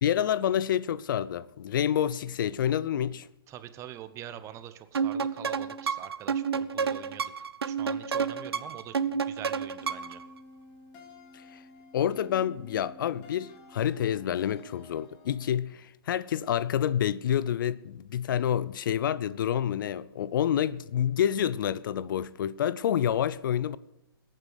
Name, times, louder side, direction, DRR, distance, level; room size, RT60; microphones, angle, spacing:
voice 1, 0.0-3.3 11.3-11.4 11.9-23.8, left 10 dB, 55° left, 0.4 m, -28 dB
voice 2, 3.5-10.2, right 11 dB, 25° right, 0.8 m, -45 dB
sound 1, 4.9-10.2, right 6 dB, 80° right, 0.6 m, -30 dB
sound 2, 9.8-15.6, left 2 dB, 35° left, 2.6 m, -52 dB
21.5 x 9.1 x 3.9 m
hypercardioid pair, 125°, 13 cm